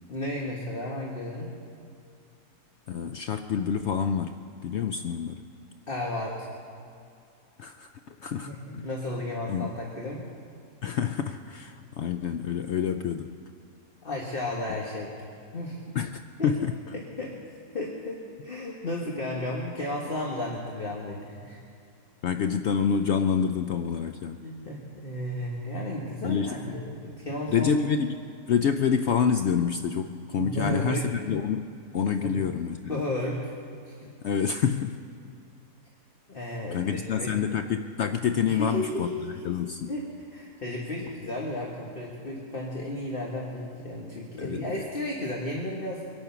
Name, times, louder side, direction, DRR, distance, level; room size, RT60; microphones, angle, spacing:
voice 1, 0.1-1.5 5.9-6.5 8.4-10.3 14.0-15.1 15.5-15.8 16.4-16.5 16.9-17.4 17.7-21.6 24.4-27.9 30.3-31.1 32.2-32.3 32.8-33.5 33.9-34.1 36.3-37.4 38.5-39.2 39.9-40.0 40.3-46.0, left 1 dB, 35° left, -2 dB, 1.6 m, -33 dB
voice 2, 2.9-5.4 7.6-8.5 9.5-9.7 10.8-13.4 15.9-16.7 22.2-24.4 26.2-26.8 27.5-28.2 28.5-31.7 31.9-33.0 34.2-35.0 36.7-39.1 39.4-39.9 44.4-44.9, left 7 dB, 90° left, 8 dB, 0.6 m, -27 dB
24.0 x 8.8 x 5.8 m, 2.4 s
omnidirectional pair, 1.8 m